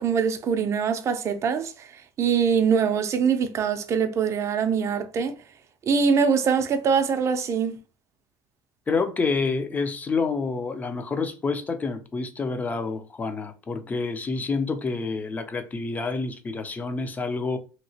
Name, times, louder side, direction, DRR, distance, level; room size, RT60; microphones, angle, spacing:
voice 1, 0.0-1.7 2.2-5.4 5.9-7.8, right 6 dB, 35° right, 0.5 m, -23 dB
voice 2, 8.9-17.6, left 4 dB, 20° left, 0.5 m, -28 dB
2.9 x 2.8 x 2.7 m
cardioid pair, 135°, 9 cm